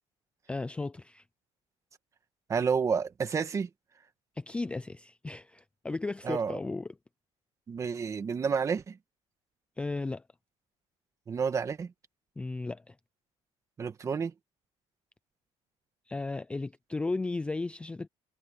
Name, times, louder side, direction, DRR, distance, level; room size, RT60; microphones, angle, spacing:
voice 1, 0.5-1.2 4.4-7.0 9.8-10.2 12.4-13.0 16.1-18.1, left 3 dB, 10° left, 0.4 m, -35 dB
voice 2, 2.5-3.7 6.2-6.6 7.7-9.0 11.3-11.9 13.8-14.3, right 6 dB, 25° right, 1.6 m, -30 dB
cardioid pair, 150°, 12 cm